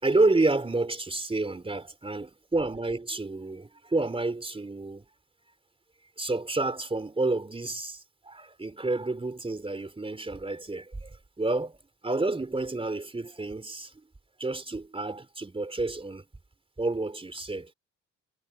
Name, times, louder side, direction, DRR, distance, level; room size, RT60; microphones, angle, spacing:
voice 1, 0.0-5.0 6.2-11.8 12.0-13.9 14.4-16.2 16.8-17.7, right 2 dB, 20° right, 4.0 m, -29 dB
cardioid pair, 90°, 30 cm